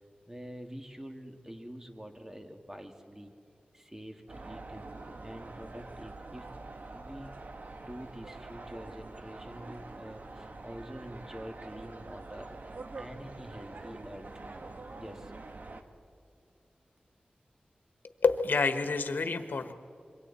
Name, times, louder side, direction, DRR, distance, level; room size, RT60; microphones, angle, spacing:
voice 1, 0.3-3.3 3.7-4.9 5.2-6.5 6.9-7.4 7.8-14.3 15.0-15.3, equal, 15° right, 4 dB, 2.5 m, -46 dB
sound 1, 4.3-15.8, right 3 dB, 65° right, 1.6 m, -45 dB
voice 2, 18.2-19.7, left 4 dB, 85° left, 8 dB, 1.2 m, -28 dB
26.5 x 23.5 x 4.3 m, 2.5 s
cardioid pair, 40°, 3 cm